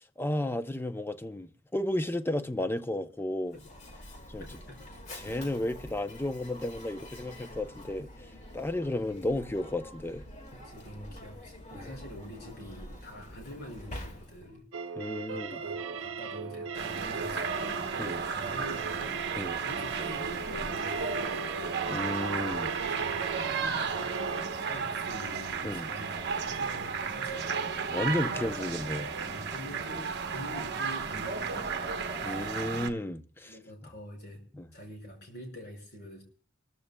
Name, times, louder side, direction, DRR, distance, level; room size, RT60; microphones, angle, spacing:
voice 1, 0.0-3.6 4.3-4.4 5.1-8.1 8.5-10.2 11.7-11.9 15.0-15.6 18.0-18.2 19.4-19.6 21.8-22.7 25.6-25.9 27.9-29.1 32.2-33.6 34.5-34.7, left 1 dB, 10° left, 0.6 m, -33 dB
Mechanisms, 3.5-14.6, left 1 dB, 40° left, 1.8 m, -46 dB
voice 2, 4.4-4.8 10.5-14.6 15.3-17.8 18.2-19.2 19.6-21.7 22.4-27.6 28.3-28.5 29.2-31.8 32.2-32.7 33.5-34.4 34.7-36.2, equal, 55° left, 5.2 m, -46 dB
sound 1, 14.7-24.4, right 5 dB, 85° right, 0.7 m, -38 dB
sound 2, 16.7-32.9, right 5 dB, 55° right, 1.0 m, -33 dB
24.5 x 14.0 x 2.2 m
head